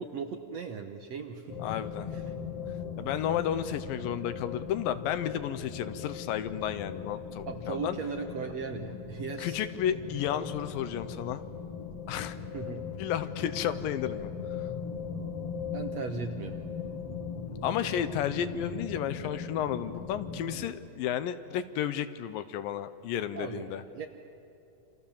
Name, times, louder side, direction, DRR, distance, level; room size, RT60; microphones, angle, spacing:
voice 1, 0.0-1.6 2.1-2.3 7.5-9.6 12.5-12.9 15.7-16.6 23.3-24.1, right 5 dB, 65° right, 5 dB, 1.8 m, -37 dB
sound 1, 1.5-20.6, left 6 dB, 45° left, 2.7 m, -39 dB
voice 2, 1.6-2.1 3.0-8.0 9.4-11.4 12.1-12.4 13.0-14.3 17.6-23.8, left 10 dB, 75° left, 12 dB, 2.5 m, -32 dB
29.5 x 26.5 x 7.3 m, 2.7 s
omnidirectional pair, 4.2 m